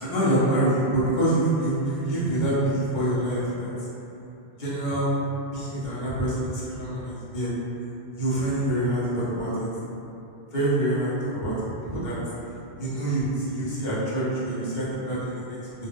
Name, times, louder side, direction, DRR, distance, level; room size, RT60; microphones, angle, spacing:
voice 1, 0.0-3.7 4.6-5.1 5.5-7.5 8.1-9.7 10.5-11.5 11.8-12.2 12.8-15.9, right 1 dB, 50° left, -9 dB, 0.8 m, -26 dB
2.2 x 2.2 x 3.3 m, 2.8 s
omnidirectional pair, 1.1 m